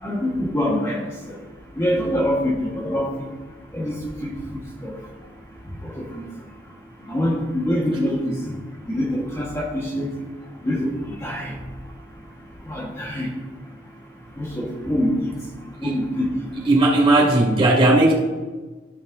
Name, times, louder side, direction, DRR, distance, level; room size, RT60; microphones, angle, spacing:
voice 1, 0.0-1.4 1.8-3.3 3.7-4.9 5.8-6.3 7.1-8.6 8.9-10.1 10.6-11.6 12.6-13.3 14.4-15.3 15.8-16.3, left 1 dB, 15° left, -4 dB, 1.3 m, -25 dB
voice 2, 16.7-18.1, right 2 dB, 30° right, -4 dB, 2.2 m, -16 dB
14.5 x 5.3 x 2.6 m, 1.3 s
head